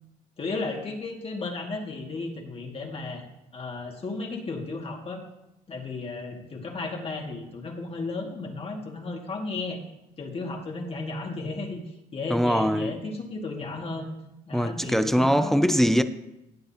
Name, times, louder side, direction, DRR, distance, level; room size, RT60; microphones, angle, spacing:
voice 1, 0.4-3.2 3.5-5.2 5.7-9.8 10.2-14.1 14.5-15.7, left 3 dB, 35° left, 2.2 m, -34 dB
voice 2, 12.3-12.9 14.5-16.0, equal, ahead, 0.5 m, -22 dB
18.0 x 7.8 x 2.9 m
cardioid pair, 110°, 17 cm